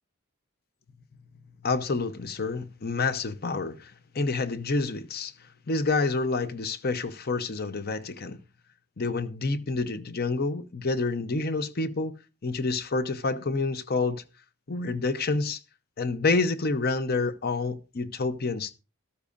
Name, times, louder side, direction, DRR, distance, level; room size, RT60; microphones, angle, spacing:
voice 1, 1.6-5.3 5.7-8.4 9.0-12.1 12.4-14.2 14.7-15.6 16.0-18.7, left 3 dB, 45° left, 0.7 m, -28 dB
13.5 x 13.0 x 2.5 m
head